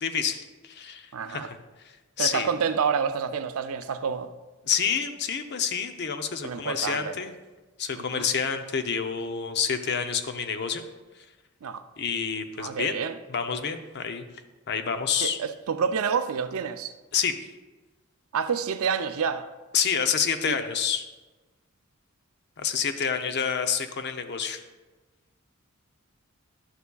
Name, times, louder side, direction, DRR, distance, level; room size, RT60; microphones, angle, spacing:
voice 1, 0.0-1.6 2.2-2.5 4.6-7.3 7.8-10.8 12.0-13.0 13.3-14.3 14.7-15.4 17.1-17.3 19.7-21.0 22.6-24.6, left 6 dB, 55° left, 0.6 m, -28 dB
voice 2, 1.1-1.5 2.2-4.3 6.4-7.2 8.0-8.3 11.6-11.9 12.6-13.2 15.2-16.9 18.3-19.5 20.5-20.6, right 6 dB, 85° right, 0.5 m, -28 dB
11.0 x 6.9 x 2.3 m
head